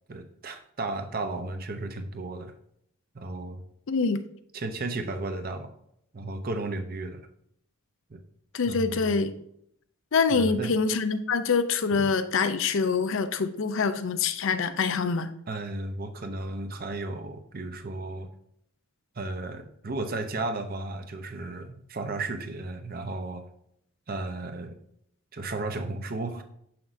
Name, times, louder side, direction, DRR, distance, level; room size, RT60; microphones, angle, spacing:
voice 1, 0.1-2.5 3.1-3.6 4.5-5.7 6.1-7.2 8.1-8.2 8.7-9.2 10.3-10.8 11.9-12.1 15.5-18.3 19.2-23.4 24.1-24.8 25.3-26.4, right 2 dB, 40° right, 0.7 m, -34 dB
voice 2, 3.9-4.2 8.5-9.3 10.1-15.3, left 5 dB, 60° left, 0.5 m, -25 dB
7.2 x 5.9 x 2.6 m
head